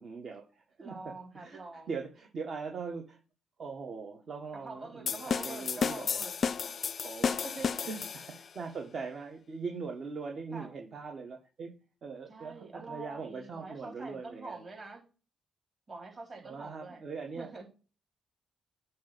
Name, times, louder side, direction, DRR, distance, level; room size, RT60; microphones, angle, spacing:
voice 1, 0.0-1.6 1.9-3.2 3.6-6.2 7.0-7.4 7.8-11.7 12.0-14.6 16.4-17.5, right 4 dB, 50° right, 1.3 m, -41 dB
voice 2, 0.8-1.9 4.6-6.4 7.4-7.9 10.5-10.7 12.3-15.1 15.9-17.0 17.3-17.7, right 3 dB, 30° right, 3.3 m, -45 dB
sound 1, 5.1-8.5, left 6 dB, 50° left, 0.4 m, -32 dB
8.5 x 2.9 x 5.9 m
cardioid pair, 90°, 0 cm